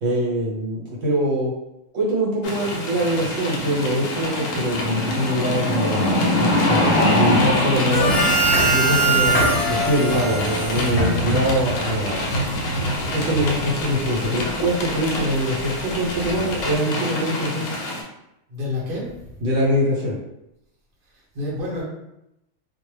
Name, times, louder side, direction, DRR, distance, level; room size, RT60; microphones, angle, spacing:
voice 1, 0.0-1.5 1.9-8.2 8.7-12.2 13.0-17.7 19.4-20.1, equal, 70° right, -5 dB, 1.2 m, -23 dB
sound 1, 2.4-18.0, left 1 dB, 85° left, 1.0 m, -25 dB
sound 2, 7.9-16.8, equal, 60° left, 0.8 m, -28 dB
Harmonica, 7.9-11.7, right 3 dB, 40° left, 0.4 m, -22 dB
voice 2, 18.5-19.3 21.3-21.8, left 2 dB, 50° right, -5 dB, 0.9 m, -28 dB
2.3 x 2.1 x 3.1 m, 0.86 s
omnidirectional pair, 1.4 m